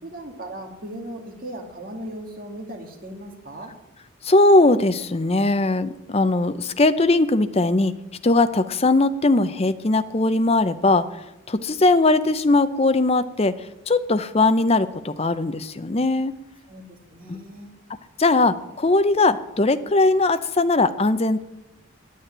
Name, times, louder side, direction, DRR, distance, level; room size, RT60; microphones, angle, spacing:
voice 1, 0.0-3.7 16.7-17.7, right 1 dB, 45° right, 1 dB, 2.4 m, -37 dB
voice 2, 4.2-7.9 8.2-11.1 11.5-13.5 13.9-16.3 17.3-17.4 18.2-21.4, left 2 dB, 30° left, 12 dB, 0.6 m, -19 dB
9.4 x 9.2 x 10.0 m, 0.94 s
head